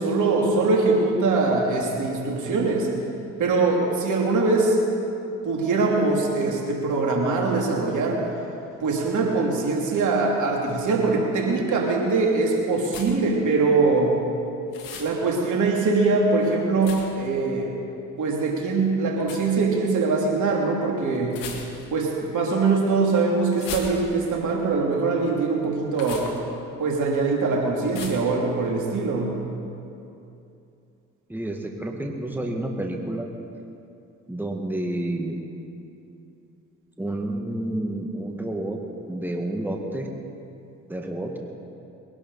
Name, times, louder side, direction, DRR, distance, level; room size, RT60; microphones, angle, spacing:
voice 1, 0.0-2.9 3.4-4.8 5.4-8.2 8.8-14.1 15.0-17.7 18.2-21.4 21.9-26.3 26.8-29.3, right 3 dB, 60° right, -1 dB, 3.0 m, -22 dB
sound 1, 12.8-13.4 14.7-15.2 16.8-17.3 19.2-19.5 21.3-22.0 23.5-24.4 25.9-26.4 27.9-28.3, left 5 dB, 70° left, 2.2 m, -37 dB
voice 2, 31.3-33.3 34.3-35.4 37.0-38.8 39.1-40.1 40.9-41.4, right 1 dB, 5° right, 1 dB, 2.0 m, -29 dB
22.0 x 11.5 x 4.2 m, 2.7 s
hypercardioid pair, 55°, 34 cm